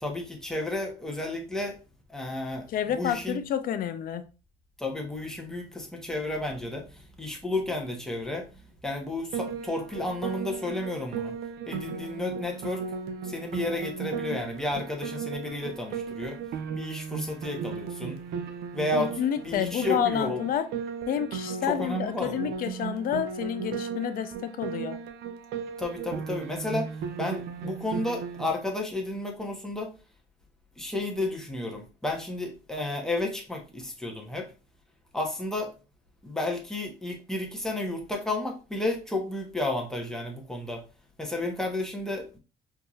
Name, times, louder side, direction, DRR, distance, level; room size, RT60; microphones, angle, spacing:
voice 1, 0.0-1.8 2.1-2.7 2.9-3.4 4.8-8.5 8.8-11.3 11.7-12.9 13.2-16.4 16.7-18.2 18.7-20.4 21.7-22.5 25.8-29.9 30.8-34.5 35.1-35.7 36.2-40.8 41.2-42.3, left 2 dB, 5° left, 0.9 m, -32 dB
voice 2, 2.7-4.2 19.0-20.7 21.1-25.0, left 9 dB, 60° left, 0.5 m, -29 dB
Piano, 9.3-28.5, right 6 dB, 75° right, 0.6 m, -36 dB
4.5 x 2.7 x 2.4 m
cardioid pair, 110°, 17 cm